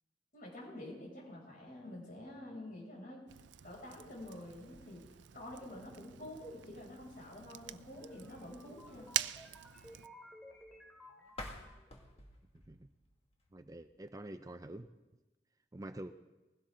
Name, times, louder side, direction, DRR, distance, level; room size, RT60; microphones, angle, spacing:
voice 1, 0.3-3.2 3.6-5.0 5.3-9.1, left 1 dB, 50° left, -3 dB, 6.7 m, -48 dB
Fire, 3.3-10.1, right 13 dB, 80° right, 0.5 m, -44 dB
sound 1, 7.9-12.1, equal, ahead, 2.5 m, -57 dB
sound 2, 11.3-14.1, left 2 dB, 35° left, 2.0 m, -51 dB
voice 2, 13.5-14.9 15.7-16.1, right 1 dB, 20° right, 9 dB, 0.5 m, -46 dB
20.5 x 16.5 x 3.8 m, 1.1 s
head